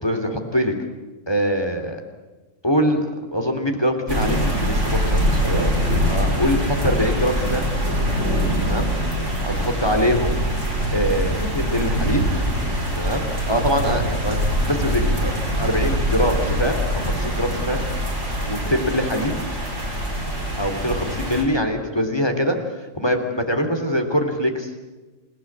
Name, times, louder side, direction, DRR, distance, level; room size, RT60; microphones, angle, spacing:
voice 1, 0.0-0.7 1.3-2.0 2.6-3.0 3.3-5.7 6.1-7.7 8.6-8.9 9.4-10.4 10.9-12.2 13.0-15.3 15.6-17.8 18.5-19.3 20.6-22.6 23.0-24.7, equal, 20° left, 5 dB, 2.9 m, -23 dB
sound 1, 4.1-21.4, equal, 65° right, 5.8 m, -23 dB
28.5 x 17.0 x 8.6 m, 1.2 s
omnidirectional pair, 1.4 m